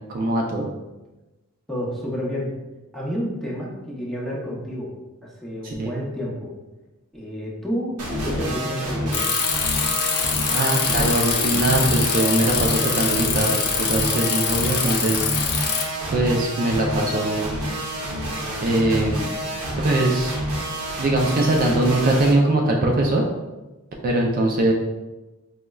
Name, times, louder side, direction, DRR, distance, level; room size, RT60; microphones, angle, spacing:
voice 1, 0.1-0.7 5.6-5.9 10.5-15.2 16.1-17.5 18.6-19.3 19.8-20.4 21.0-23.2 24.0-24.7, right 2 dB, 40° right, 0 dB, 0.3 m, -21 dB
voice 2, 1.7-2.5 2.9-4.9 5.2-6.5 7.1-9.3, equal, ahead, -5 dB, 0.6 m, -29 dB
sound 1, 8.0-22.3, right 1 dB, 75° right, 0.7 m, -28 dB
Bicycle, 9.1-15.8, left 6 dB, 50° left, 0.4 m, -24 dB
4.8 x 2.1 x 2.2 m, 1.1 s
head